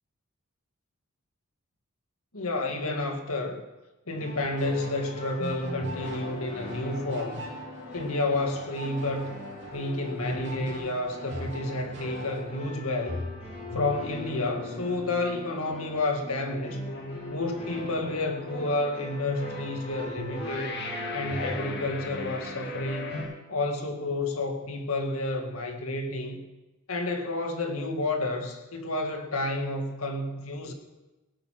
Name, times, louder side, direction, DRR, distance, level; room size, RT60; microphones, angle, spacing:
voice 1, 2.3-3.6 4.1-7.5 7.9-9.4 9.7-13.2 13.7-16.8 17.3-20.8 21.1-26.4 26.9-30.7, left 2 dB, 80° left, 4 dB, 1.9 m, -30 dB
sound 1, 4.1-23.2, left 1 dB, 25° left, 5.5 m, -42 dB
sound 2, 4.3-12.4, right 2 dB, 55° right, 3.1 m, -45 dB
sound 3, 4.9-23.3, left 2 dB, 50° left, 1.6 m, -40 dB
18.0 x 9.6 x 5.9 m, 1.1 s
head